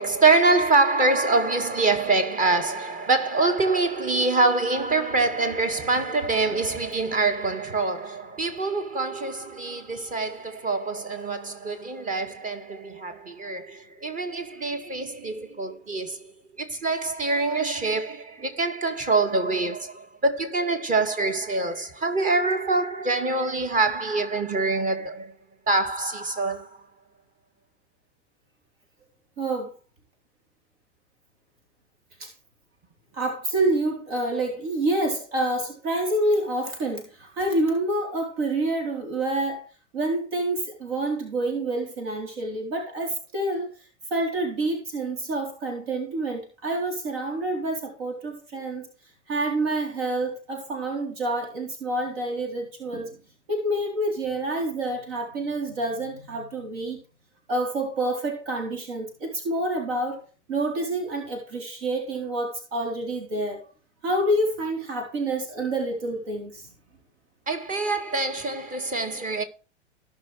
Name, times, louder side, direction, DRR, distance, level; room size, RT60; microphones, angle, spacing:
voice 1, 0.0-16.3 16.6-25.3 25.7-26.8 67.5-69.4, right 3 dB, 25° right, 2.0 m, -25 dB
voice 2, 29.4-29.7 32.2-32.3 33.1-39.6 39.9-43.7 44.1-48.9 49.3-53.2 53.5-57.0 57.5-60.2 60.5-63.7 64.0-66.7, right 1 dB, 60° right, 4.0 m, -27 dB
18.0 x 6.1 x 3.3 m
figure-of-eight pair, 90°, 34 cm